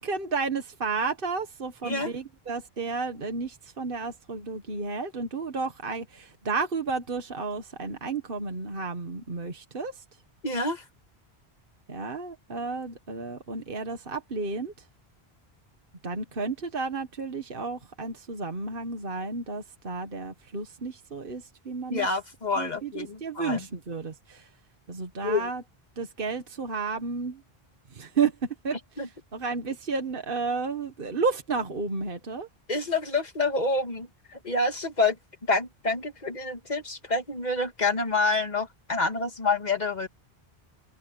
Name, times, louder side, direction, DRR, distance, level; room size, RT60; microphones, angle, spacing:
voice 1, 0.0-10.0 11.9-14.8 16.0-22.1 22.6-24.5 24.9-25.6 26.0-27.4 27.9-32.5, right 4 dB, 60° right, 1.7 m, -32 dB
voice 2, 10.4-10.8 21.9-23.7 25.2-25.5 29.0-29.1 32.7-35.2 35.5-40.1, left 3 dB, 45° left, 2.1 m, -27 dB
open air
omnidirectional pair, 1.0 m